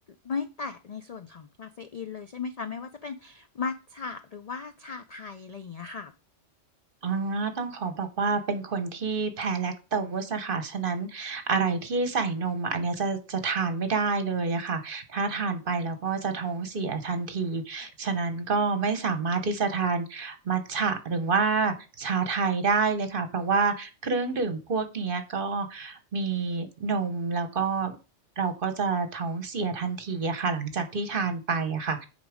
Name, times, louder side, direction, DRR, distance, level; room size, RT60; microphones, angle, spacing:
voice 1, 0.2-6.1, left 5 dB, 65° left, 9 dB, 0.4 m, -36 dB
voice 2, 7.0-28.0 28.4-32.1, right 4 dB, 45° right, 9 dB, 1.1 m, -28 dB
9.3 x 4.0 x 4.9 m, 0.32 s
omnidirectional pair, 1.3 m